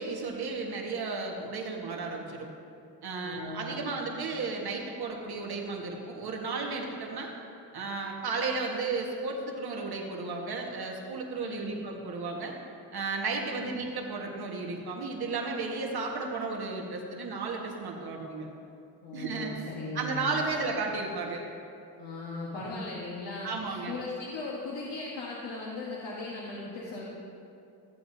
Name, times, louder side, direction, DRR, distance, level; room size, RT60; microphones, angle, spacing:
voice 1, 0.0-2.5 3.0-7.3 7.7-12.5 12.9-18.5 19.1-19.5 19.9-21.4 22.5-22.8 23.4-24.0, right 3 dB, 60° right, 0 dB, 1.6 m, -34 dB
voice 2, 3.2-3.9 11.4-11.8 13.5-13.7 19.0-20.6 22.0-27.1, left 2 dB, 70° left, -5 dB, 1.5 m, -38 dB
14.5 x 7.9 x 2.8 m, 2.6 s
supercardioid pair, 60°, 43 cm